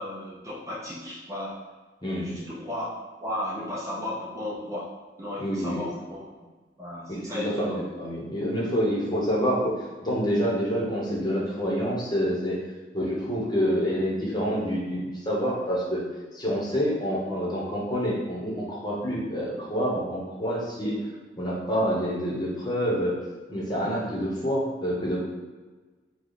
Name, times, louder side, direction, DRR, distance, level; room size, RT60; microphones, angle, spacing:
voice 1, 0.0-1.6 2.0-2.9 3.2-4.9 5.2-6.3 6.8-7.9, left 1 dB, 20° right, -6 dB, 0.7 m, -35 dB
voice 2, 2.0-2.3 5.4-5.8 7.1-9.7 10.0-12.6 12.9-16.0 16.3-20.9 21.4-23.1 23.5-25.2, equal, 25° left, -5 dB, 1.0 m, -27 dB
4.9 x 2.3 x 4.0 m, 1.3 s
head